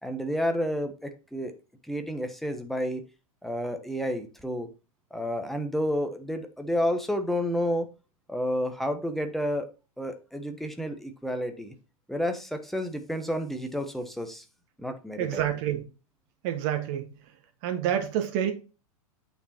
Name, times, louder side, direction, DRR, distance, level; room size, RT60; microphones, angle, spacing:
voice 1, 0.0-1.5 1.9-3.0 3.4-4.7 5.1-7.9 8.3-9.7 10.0-11.7 12.1-14.4 14.8-15.4, equal, ahead, 1.2 m, -30 dB
voice 2, 15.2-15.8 16.4-17.1 17.6-18.5, right 10 dB, 45° right, 1.9 m, -28 dB
8.7 x 4.6 x 4.4 m
figure-of-eight pair, 100°, 19 cm